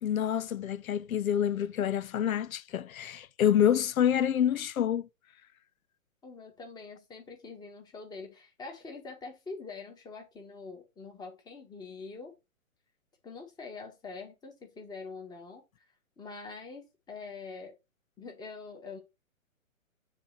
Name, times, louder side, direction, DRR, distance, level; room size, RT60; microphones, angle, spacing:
voice 1, 0.0-5.1, left 9 dB, 80° left, 0.6 m, -27 dB
voice 2, 6.2-12.3 13.2-15.6 16.2-17.7 18.2-19.0, left 4 dB, 10° left, 1.3 m, -44 dB
6.7 x 3.1 x 5.8 m
hypercardioid pair, 140°, 41 cm